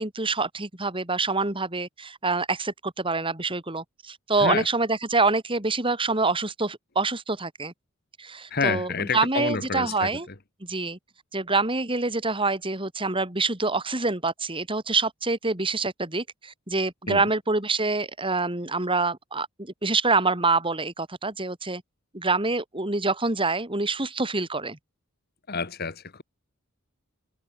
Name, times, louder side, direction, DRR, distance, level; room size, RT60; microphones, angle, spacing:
voice 1, 0.0-7.7 8.2-10.3 10.6-11.0 11.3-21.8 22.1-24.8, right 3 dB, 25° right, 3.9 m, -26 dB
voice 2, 8.5-10.1 17.1-17.2 25.5-26.2, left 4 dB, 50° left, 1.8 m, -28 dB
head